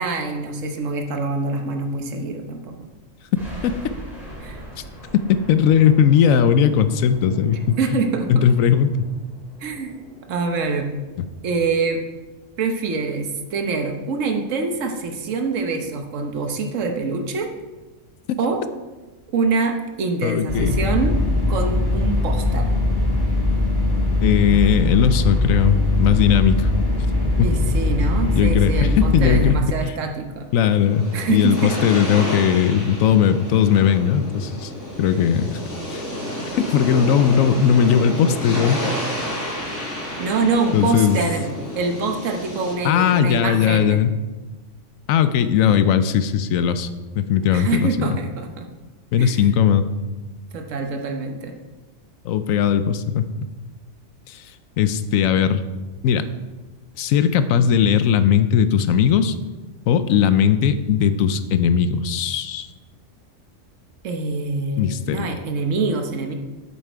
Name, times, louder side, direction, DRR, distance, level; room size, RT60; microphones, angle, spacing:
voice 1, 0.0-2.8 4.4-4.6 7.8-8.5 9.6-10.0 10.3-10.9 11.4-12.0 12.6-17.5 18.4-18.6 19.3-21.2 21.5-22.7 27.4-30.5 31.1-31.7 40.2-41.5 41.7-44.0 47.5-48.7 49.2-49.5 50.5-51.5 64.0-66.3, right 4 dB, 70° right, 4 dB, 1.3 m, -25 dB
sound 1, 3.3-11.9, right 1 dB, ahead, 3.2 m, -42 dB
voice 2, 5.3-8.0 8.3-9.1 18.3-18.4 20.2-20.8 24.2-26.7 27.4-27.5 28.4-29.6 30.5-34.7 35.0-35.6 35.9-36.0 36.5-38.8 40.7-41.2 42.8-44.1 45.1-46.9 47.2-48.2 49.1-49.9 52.2-53.3 54.3-54.5 54.8-55.6 56.0-56.2 57.0-59.4 59.9-62.7 64.8-65.3, left 8 dB, 85° left, 12 dB, 1.0 m, -18 dB
sound 2, 20.5-29.5, left 2 dB, 15° left, 1.6 m, -20 dB
sound 3, 30.5-42.7, equal, 60° left, 2.9 m, -30 dB
8.5 x 7.3 x 4.5 m, 1.2 s
omnidirectional pair, 1.4 m